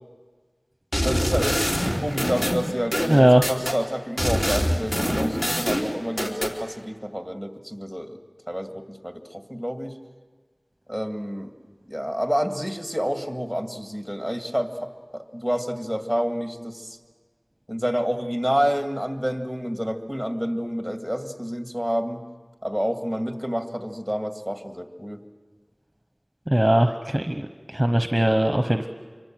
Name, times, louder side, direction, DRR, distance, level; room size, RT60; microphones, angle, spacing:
sound 1, 0.9-3.8 4.2-6.5, equal, 35° left, 3.5 m, -25 dB
voice 1, 1.0-8.2 8.5-9.9 10.9-11.5 11.9-17.0 17.7-22.2 22.6-25.2, equal, 5° left, 6 dB, 2.1 m, -28 dB
voice 2, 3.1-3.4 26.5-27.5 27.7-28.9, right 1 dB, 20° right, 7 dB, 1.0 m, -19 dB
26.5 x 24.0 x 7.6 m, 1.5 s
wide cardioid pair, 40°, 0 cm